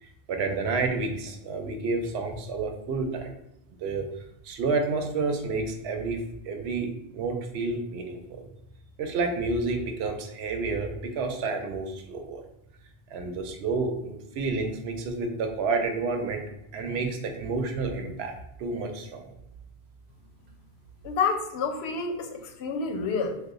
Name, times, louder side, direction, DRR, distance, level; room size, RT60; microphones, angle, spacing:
voice 1, 0.0-3.4 3.8-4.1 4.4-8.4 9.0-12.4 13.1-16.4 16.7-18.3 18.6-19.3, right 3 dB, 85° right, 4 dB, 0.8 m, -30 dB
voice 2, 21.0-23.4, left 5 dB, 90° left, 5 dB, 0.8 m, -29 dB
2.8 x 2.1 x 3.6 m, 0.80 s
omnidirectional pair, 1.1 m